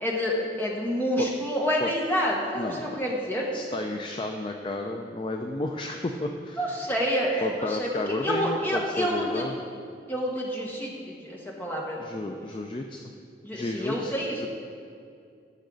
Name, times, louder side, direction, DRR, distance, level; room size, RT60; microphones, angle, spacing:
voice 1, 0.0-3.5 6.6-9.5 10.1-12.0 13.4-14.5, equal, 10° left, -2 dB, 1.3 m, -28 dB
voice 2, 2.5-2.9 3.5-6.6 7.4-9.6 12.0-13.0 13.5-14.1 14.4-14.5, left 2 dB, 30° left, 3 dB, 0.4 m, -32 dB
15.0 x 6.5 x 3.9 m, 2.3 s
head